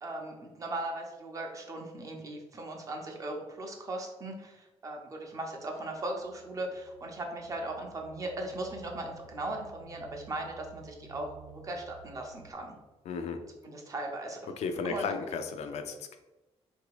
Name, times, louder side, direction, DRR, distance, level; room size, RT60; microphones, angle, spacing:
voice 1, 0.0-12.7 13.6-14.4 14.8-15.1, right 2 dB, 30° right, 2 dB, 0.7 m, -38 dB
sound 1, 5.7-12.5, right 6 dB, 65° right, 0.9 m, -54 dB
voice 2, 13.1-13.4 14.6-16.2, left 5 dB, 70° left, 6 dB, 0.5 m, -34 dB
3.9 x 2.7 x 4.7 m, 1.0 s
wide cardioid pair, 175°, 12 cm